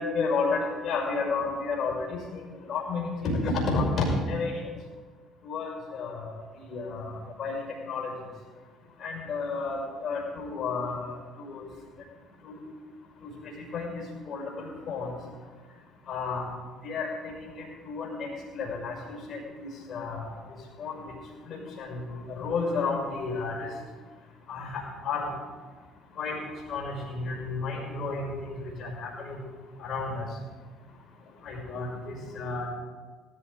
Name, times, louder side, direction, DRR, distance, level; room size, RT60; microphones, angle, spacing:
voice 1, 0.0-2.2 2.7-4.5 5.4-6.4 6.7-7.6 7.9-8.1 9.0-11.1 11.4-11.6 12.5-12.6 13.7-13.9 14.3-15.1 16.1-16.4 16.8-17.1 17.5-18.3 18.5-20.3 20.8-21.0 21.5-23.7 24.5-25.3 26.2-26.4 26.7-29.4 29.8-30.2 31.4-32.7, left 4 dB, 50° left, 0 dB, 5.7 m, -31 dB
18.5 x 14.0 x 3.9 m, 1.4 s
figure-of-eight pair, 55°, 0 cm